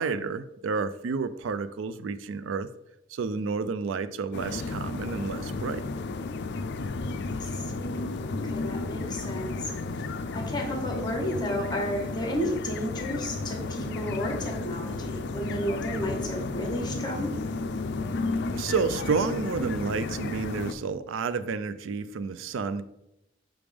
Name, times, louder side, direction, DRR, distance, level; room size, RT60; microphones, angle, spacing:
voice 1, 0.0-2.7 3.1-5.9 18.5-22.8, right 5 dB, 85° right, 13 dB, 0.4 m, -30 dB
sound 1, 4.3-20.7, left 3 dB, 60° left, 0.4 m, -33 dB
voice 2, 7.4-9.7 10.3-17.3, equal, 25° left, 1 dB, 1.3 m, -32 dB
6.0 x 3.5 x 4.9 m, 0.85 s
head